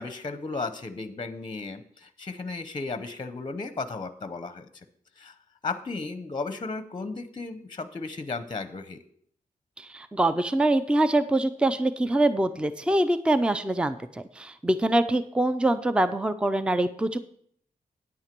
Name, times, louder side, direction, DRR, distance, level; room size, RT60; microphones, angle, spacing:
voice 1, 0.0-4.8 5.2-5.3 5.6-9.0, left 3 dB, 30° left, 11 dB, 0.7 m, -35 dB
voice 2, 9.8-17.2, right 1 dB, 5° right, 12 dB, 0.5 m, -24 dB
9.6 x 8.8 x 4.5 m, 0.63 s
wide cardioid pair, 100°, 16 cm